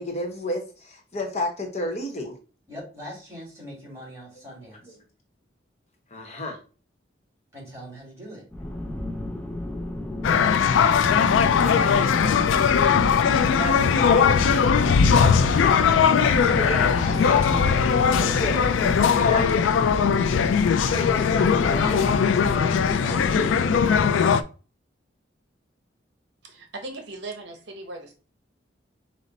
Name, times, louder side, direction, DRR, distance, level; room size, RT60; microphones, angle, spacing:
voice 1, 0.0-2.3 6.1-6.6 11.5-12.2 13.6-18.7 19.0-19.6 20.9-23.6, left 1 dB, 35° left, 0.8 m, -33 dB
voice 2, 2.7-5.0 7.5-8.5 15.5-15.6, equal, 15° right, 2.0 m, -41 dB
sound 1, 8.5-24.2, left 1 dB, 10° left, 0.5 m, -32 dB
sound 2, 10.2-24.4, left 6 dB, 85° left, 0.3 m, -20 dB
voice 3, 26.4-28.1, right 2 dB, 65° right, 0.9 m, -38 dB
5.2 x 2.0 x 3.9 m
head